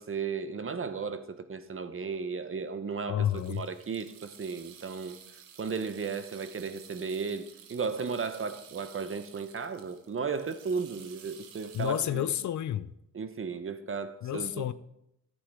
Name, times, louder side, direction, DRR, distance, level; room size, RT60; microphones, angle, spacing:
voice 1, 0.0-5.2 5.6-12.3 13.1-14.6, right 5 dB, 40° right, 0.9 m, -35 dB
voice 2, 3.1-3.7 11.7-12.9 14.2-14.7, left 11 dB, 60° left, 0.6 m, -30 dB
sound 1, 3.3-12.1, right 8 dB, 85° right, 1.0 m, -53 dB
11.5 x 8.2 x 3.5 m
supercardioid pair, 60°, 33 cm